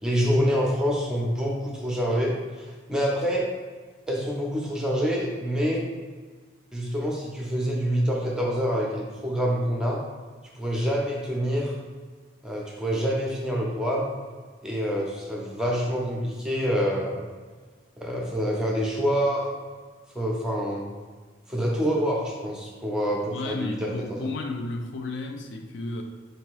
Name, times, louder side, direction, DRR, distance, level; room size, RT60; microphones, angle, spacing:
voice 1, 0.0-3.5 4.1-5.8 6.7-10.0 10.5-11.7 12.4-14.1 14.6-17.2 18.0-19.5 20.1-20.9 21.5-24.3, equal, 5° right, -2 dB, 0.7 m, -26 dB
voice 2, 23.2-26.0, left 2 dB, 60° left, 4 dB, 0.4 m, -33 dB
3.9 x 2.8 x 4.6 m, 1.4 s
head